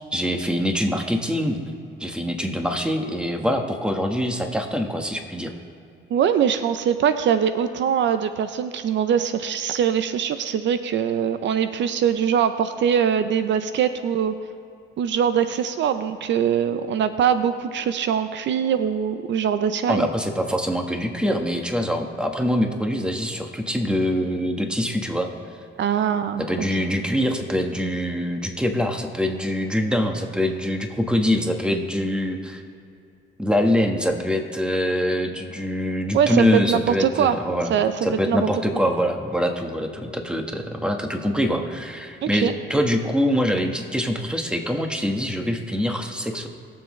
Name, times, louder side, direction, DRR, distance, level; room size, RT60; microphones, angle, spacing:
voice 1, 0.1-1.6 2.0-5.5 19.9-25.3 26.4-32.6 33.4-37.7 38.0-46.5, equal, 5° right, 4 dB, 1.3 m, -24 dB
voice 2, 6.1-14.3 15.0-20.1 25.8-26.5 36.1-37.4 37.7-37.9 38.3-38.5 42.2-42.5, right 8 dB, 70° right, 10 dB, 0.6 m, -22 dB
21.0 x 7.3 x 3.2 m, 2.6 s
cardioid pair, 90°, 20 cm